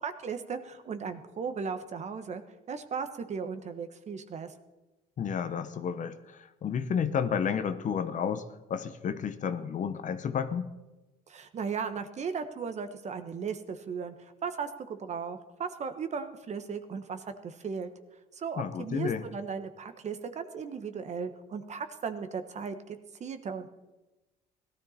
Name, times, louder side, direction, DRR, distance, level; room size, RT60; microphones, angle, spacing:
voice 1, 0.0-2.4 2.7-4.5 11.3-14.1 14.4-17.9 18.3-23.7, right 6 dB, 40° right, 9 dB, 1.3 m, -36 dB
voice 2, 5.2-8.4 8.7-10.7 18.6-19.3, left 7 dB, 50° left, 11 dB, 1.0 m, -31 dB
17.5 x 13.0 x 4.3 m, 1.1 s
cardioid pair, 110°, 17 cm